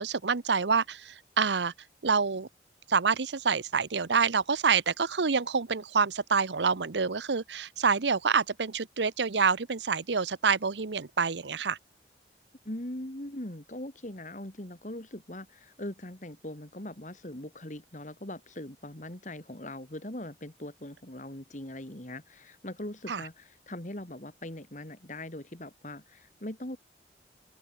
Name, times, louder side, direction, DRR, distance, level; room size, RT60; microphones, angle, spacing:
voice 1, 0.0-1.7 2.0-2.5 2.9-11.8 23.1-23.2, right 5 dB, 85° right, 0.9 m, -27 dB
voice 2, 12.6-26.8, left 1 dB, 45° left, 2.6 m, -41 dB
open air
head